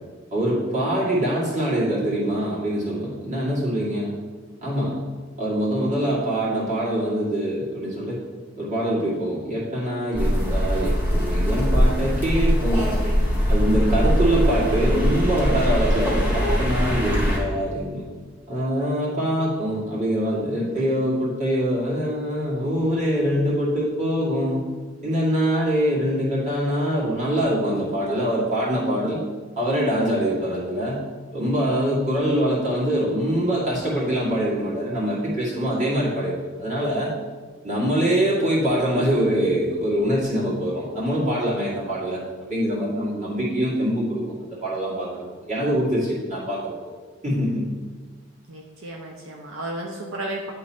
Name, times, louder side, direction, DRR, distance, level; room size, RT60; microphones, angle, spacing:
voice 1, 0.3-4.1 4.6-5.0 5.4-8.2 8.6-12.9 13.5-18.1 18.5-24.6 25.0-29.2 29.6-31.0 31.3-37.1 37.6-42.2 42.5-46.9 47.2-47.7, equal, 35° right, -7 dB, 2.3 m, -24 dB
sound 1, 10.1-17.4, equal, 10° right, 1.5 m, -21 dB
voice 2, 12.7-13.4 20.6-20.9 48.5-50.5, right 1 dB, 85° right, 0 dB, 0.8 m, -34 dB
9.7 x 3.8 x 4.3 m, 1.4 s
head